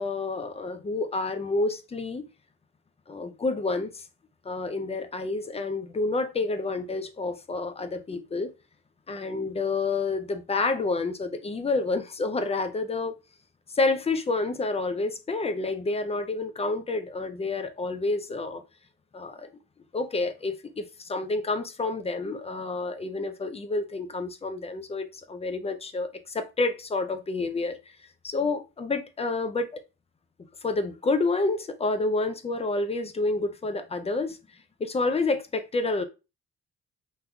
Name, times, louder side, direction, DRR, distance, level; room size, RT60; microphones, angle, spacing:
voice 1, 0.0-2.3 3.1-4.0 4.5-8.5 9.1-13.1 13.7-18.6 19.1-19.5 19.9-27.8 28.2-29.7 30.6-34.4 34.8-36.0, left 3 dB, 20° left, 0.4 m, -29 dB
3.5 x 2.7 x 2.3 m
cardioid pair, 90°, 30 cm